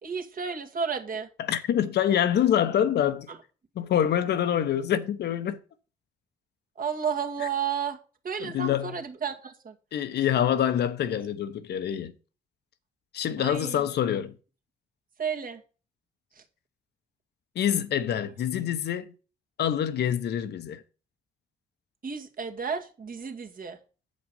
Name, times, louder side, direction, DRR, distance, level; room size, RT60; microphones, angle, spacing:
voice 1, 0.0-1.3 6.8-8.0 8.2-9.7 13.4-13.9 15.2-15.6 22.0-23.8, right 6 dB, 50° right, 1.8 m, -32 dB
voice 2, 1.4-3.3 3.8-5.6 7.4-7.5 8.4-9.0 9.9-12.1 13.1-14.3 17.5-19.1 19.6-20.8, left 10 dB, 65° left, 0.9 m, -26 dB
8.0 x 5.2 x 5.4 m
hypercardioid pair, 45°, 18 cm